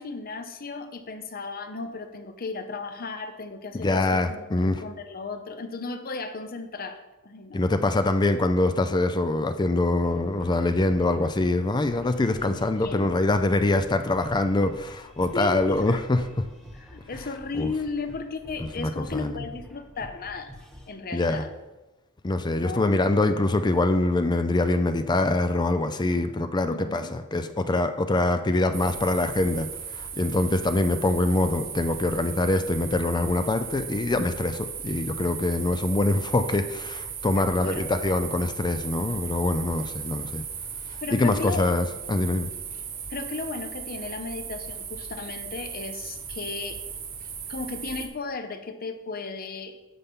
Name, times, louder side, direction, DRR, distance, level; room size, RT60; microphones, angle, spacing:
voice 1, 0.0-7.6 12.4-13.1 15.3-16.0 16.8-20.5 20.9-21.5 22.6-23.0 26.7-27.1 37.3-37.8 41.0-41.7 43.1-46.8 47.5-49.8, left 4 dB, 45° left, 8 dB, 0.8 m, -35 dB
voice 2, 3.7-4.8 7.5-16.5 17.6-17.7 18.6-19.4 21.1-21.5 22.2-40.4 41.1-42.5, left 2 dB, 20° left, 9 dB, 0.4 m, -24 dB
sound 1, 10.0-20.9, equal, ahead, 1.2 m, -47 dB
sound 2, 28.7-48.1, right 7 dB, 45° right, 1.1 m, -37 dB
9.8 x 6.8 x 3.7 m, 1.1 s
head